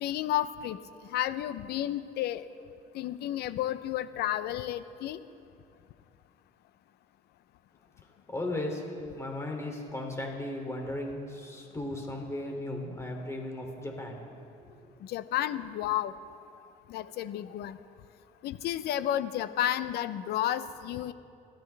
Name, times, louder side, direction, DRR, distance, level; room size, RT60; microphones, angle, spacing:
voice 1, 0.0-0.8 1.1-2.5 2.9-5.2 15.0-16.1 16.9-17.8 18.4-21.1, left 12 dB, 75° left, 13 dB, 0.7 m, -31 dB
voice 2, 8.3-14.2 14.7-14.9, left 1 dB, 15° left, 2 dB, 2.8 m, -36 dB
28.0 x 13.0 x 3.4 m, 2.4 s
cardioid pair, 110°, 17 cm